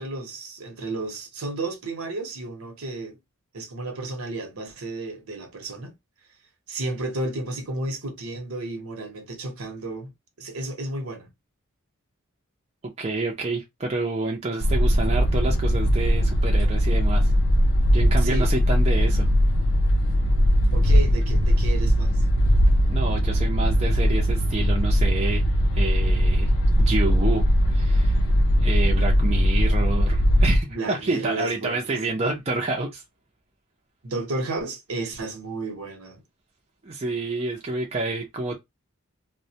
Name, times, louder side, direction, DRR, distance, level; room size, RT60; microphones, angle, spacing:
voice 1, 0.0-3.2 3.5-5.9 6.7-10.1 10.4-11.3 18.1-18.5 20.7-22.2 30.7-32.2 34.0-36.2, right 2 dB, 75° right, 0.8 m, -32 dB
voice 2, 12.8-17.3 17.9-19.3 22.9-25.4 25.7-26.5 26.8-27.4 27.7-28.2 28.6-33.0 36.8-38.6, right 2 dB, 30° right, 0.5 m, -28 dB
sound 1, 14.6-30.6, equal, 60° left, 0.5 m, -20 dB
2.2 x 2.1 x 2.7 m
head